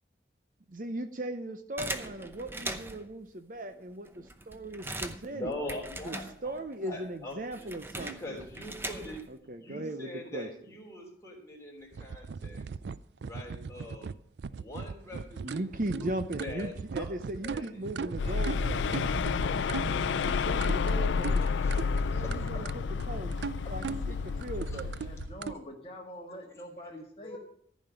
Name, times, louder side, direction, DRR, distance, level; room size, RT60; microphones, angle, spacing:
voice 1, 0.7-5.5 6.0-6.2 6.4-8.4 9.3-10.5 15.1-18.9 20.0-21.5 22.0-23.4 23.7-25.1, right 1 dB, 45° right, 9 dB, 0.8 m, -38 dB
sound 1, 1.8-3.1 3.7-3.8 4.1-6.7 7.0-9.4, right 2 dB, 10° right, 0.7 m, -40 dB
voice 2, 5.3-9.2 9.6-12.6 13.2-14.1 14.5-16.1 16.4-17.1 17.4-17.9 18.2-18.4 21.0-21.1 21.6-22.6 23.6-23.7 24.7-24.8 27.2-27.4, left 1 dB, 15° left, -1 dB, 3.3 m, -43 dB
sound 2, 11.9-25.5, right 5 dB, 70° right, 0.4 m, -39 dB
sound 3, 18.2-25.3, left 5 dB, 80° left, 0.4 m, -30 dB
voice 3, 25.0-27.4, equal, 30° left, 1 dB, 1.7 m, -45 dB
14.5 x 5.2 x 8.9 m, 0.68 s
head